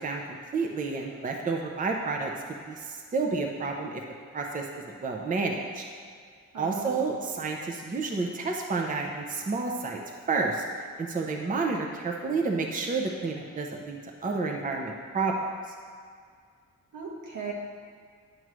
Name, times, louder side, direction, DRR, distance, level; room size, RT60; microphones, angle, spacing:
voice 1, 0.0-4.0 4.3-5.8 6.6-10.0 10.3-10.6 11.0-15.3, right 4 dB, 25° right, 1 dB, 0.6 m, -30 dB
voice 2, 6.5-7.1 16.9-17.5, right 5 dB, 80° right, -2 dB, 1.3 m, -37 dB
9.2 x 3.1 x 6.1 m, 2.1 s
wide cardioid pair, 135°, 30 cm